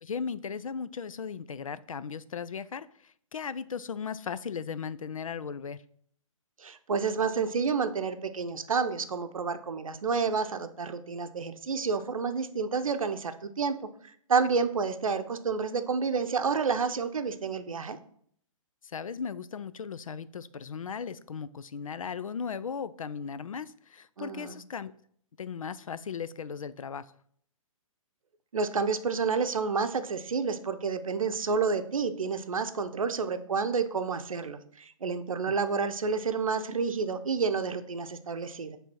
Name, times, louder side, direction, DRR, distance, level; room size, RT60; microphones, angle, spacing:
voice 1, 0.0-2.9 3.3-5.8 18.8-24.9 25.4-27.1 35.4-35.5, left 6 dB, 75° left, 15 dB, 0.4 m, -37 dB
voice 2, 6.6-13.8 14.3-18.0 24.2-24.6 28.5-38.8, right 5 dB, 75° right, 9 dB, 0.7 m, -29 dB
8.4 x 3.5 x 4.3 m, 0.64 s
figure-of-eight pair, 125°, 18 cm